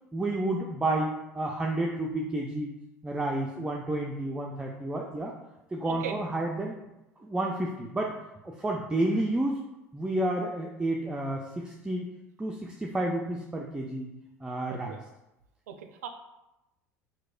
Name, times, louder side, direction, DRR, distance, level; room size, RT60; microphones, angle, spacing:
voice 1, 0.1-2.7 3.0-5.3 5.7-6.8 7.2-8.2 8.4-9.6 9.9-12.1 12.4-14.1 14.4-15.0, right 1 dB, 10° right, 0 dB, 0.4 m, -30 dB
voice 2, 5.8-6.2 14.7-15.0 15.7-16.1, right 8 dB, 75° right, 7 dB, 0.4 m, -38 dB
4.6 x 2.1 x 2.4 m, 0.93 s
hypercardioid pair, 75°, 8 cm